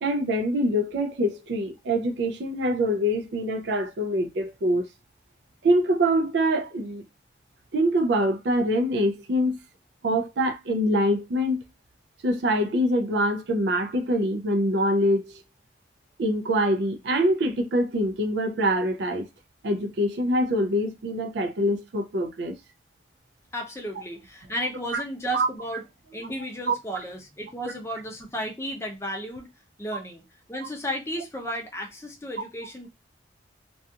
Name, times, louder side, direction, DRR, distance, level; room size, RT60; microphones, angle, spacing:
voice 1, 0.0-4.9 5.6-7.0 7.7-9.6 10.0-11.6 12.2-15.4 16.2-19.3 19.6-22.6 24.9-25.0 25.3-25.5 26.7-26.8, equal, 70° right, 0.4 m, -24 dB
voice 2, 23.5-25.8 26.1-29.5 29.8-30.2 30.5-32.9, equal, 15° left, 0.5 m, -33 dB
2.4 x 2.3 x 2.7 m
head